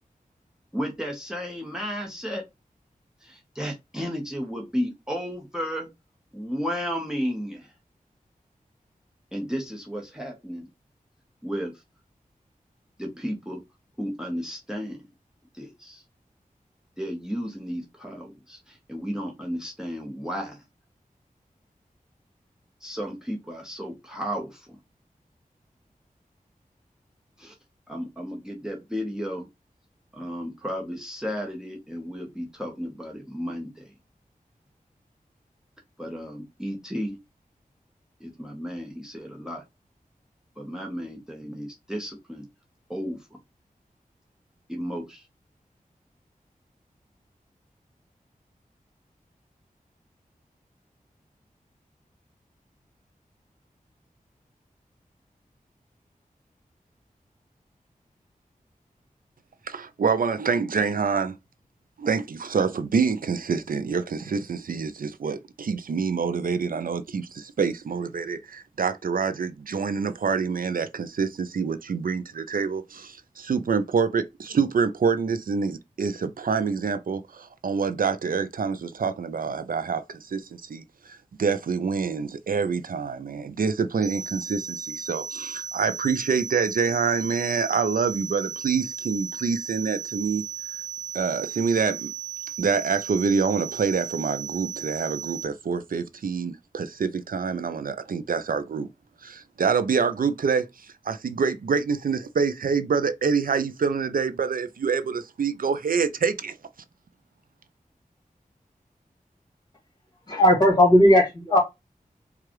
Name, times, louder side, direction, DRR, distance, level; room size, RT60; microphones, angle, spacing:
voice 1, 0.7-2.4 3.2-5.9 6.3-7.7 9.3-10.7 11.4-11.7 13.0-13.6 14.0-15.1 15.5-16.0 17.0-20.6 22.8-24.8 27.4-27.5 27.9-29.5 30.1-33.8 36.0-37.2 38.2-39.6 40.6-42.5 42.9-43.2 44.7-45.2, equal, 5° right, 1.0 m, -33 dB
voice 2, 59.7-61.4 62.0-90.4 91.1-92.1 92.6-98.9 99.2-106.6, right 5 dB, 75° right, 0.4 m, -26 dB
sound 1, 84.0-95.5, right 8 dB, 25° right, 1.2 m, -36 dB
voice 3, 110.3-111.6, equal, 30° left, 2.3 m, -16 dB
4.6 x 2.4 x 3.0 m
wide cardioid pair, 85°, 15 cm